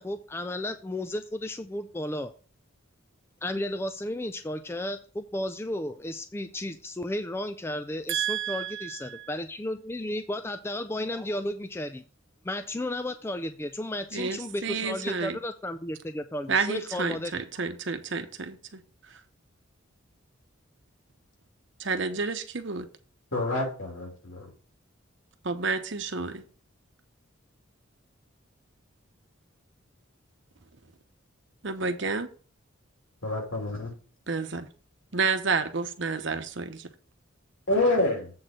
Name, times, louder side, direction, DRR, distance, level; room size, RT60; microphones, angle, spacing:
voice 1, 0.0-2.3 3.4-12.0 12.4-17.4, left 1 dB, 10° left, 9 dB, 0.3 m, -33 dB
voice 2, 8.1-9.3 14.1-15.4 16.5-18.8 21.8-22.9 25.4-26.4 31.6-32.3 34.3-34.7 35.1-36.9, right 5 dB, 60° right, 8 dB, 0.9 m, -30 dB
voice 3, 23.3-24.5 33.2-33.9 37.7-38.3, left 2 dB, 75° left, 1 dB, 2.9 m, -27 dB
7.8 x 4.3 x 6.0 m, 0.38 s
head